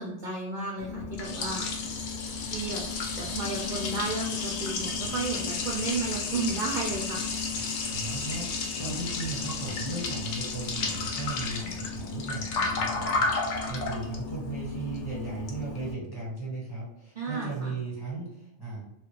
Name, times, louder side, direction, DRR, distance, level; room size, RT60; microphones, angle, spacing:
voice 1, 0.0-1.7 2.5-2.8 3.2-7.3 17.2-17.8, right 3 dB, 65° right, -1 dB, 0.5 m, -33 dB
Liquid, 0.8-15.9, left 4 dB, 70° left, 0.9 m, -32 dB
voice 2, 7.9-8.5 8.8-18.9, right 3 dB, 20° left, -6 dB, 1.1 m, -36 dB
2.8 x 2.4 x 3.0 m, 0.80 s
omnidirectional pair, 1.3 m